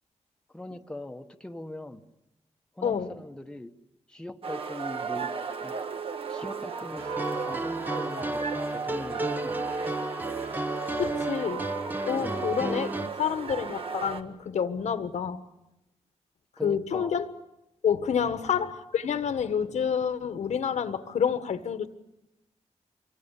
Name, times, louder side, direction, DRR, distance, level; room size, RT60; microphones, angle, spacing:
voice 1, 0.5-2.0 2.8-3.7 4.1-5.3 5.6-5.8 6.3-8.4 8.7-9.9 12.2-12.4 16.6-17.1 18.2-18.4, left 1 dB, 5° left, 5 dB, 1.1 m, -40 dB
voice 2, 2.8-3.1 11.0-11.7 12.0-15.4 16.6-17.3 17.8-21.9, left 7 dB, 80° left, 10 dB, 1.5 m, -28 dB
sound 1, 4.4-14.2, right 6 dB, 50° right, 1.6 m, -35 dB
sound 2, 7.0-13.1, right 1 dB, 15° right, 1.1 m, -33 dB
26.0 x 23.0 x 8.4 m, 0.92 s
wide cardioid pair, 165°, 12 cm